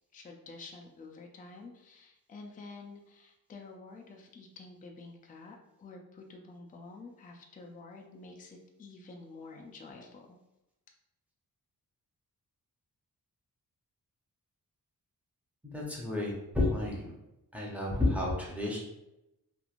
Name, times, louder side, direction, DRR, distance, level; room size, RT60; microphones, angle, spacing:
voice 1, 0.1-10.4, left 3 dB, 25° left, 1 dB, 0.3 m, -49 dB
voice 2, 15.6-17.1 17.5-18.8, left 2 dB, 5° right, -4 dB, 0.7 m, -31 dB
3.0 x 2.5 x 2.4 m, 0.90 s
wide cardioid pair, 125°, 36 cm